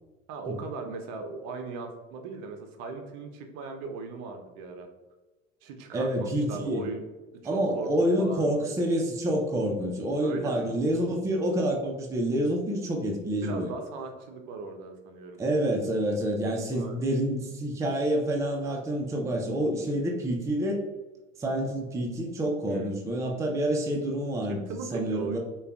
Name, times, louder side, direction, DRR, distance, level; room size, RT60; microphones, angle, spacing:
voice 1, 0.3-4.9 5.6-7.1 7.4-7.9 8.2-8.7 10.2-10.7 13.4-15.4 16.7-17.0 22.7-23.0 24.5-25.4, right 4 dB, 45° right, 5 dB, 0.6 m, -38 dB
voice 2, 5.9-6.8 7.4-13.7 15.4-20.8 21.4-24.6 24.9-25.4, right 1 dB, 10° right, 1 dB, 0.5 m, -28 dB
6.5 x 2.4 x 2.4 m, 1.2 s
figure-of-eight pair, 65°, 40 cm